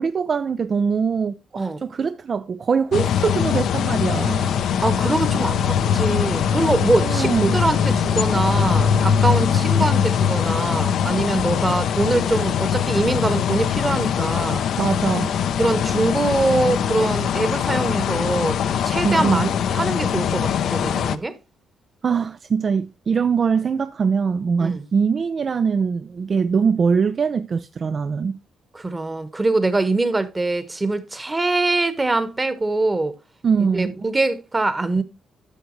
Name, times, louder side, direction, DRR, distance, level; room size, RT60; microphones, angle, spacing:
voice 1, 0.0-4.5 7.0-7.6 14.8-15.4 19.0-19.5 22.0-28.4 33.4-33.9, right 6 dB, 45° right, 0.4 m, -22 dB
sound 1, 2.9-21.2, left 8 dB, 70° left, 0.6 m, -22 dB
voice 2, 4.3-14.7 15.6-18.6 18.8-21.3 24.6-24.8 28.7-33.1 33.6-35.0, right 2 dB, 20° right, 1.2 m, -23 dB
11.5 x 6.8 x 3.1 m
cardioid pair, 90°, 0 cm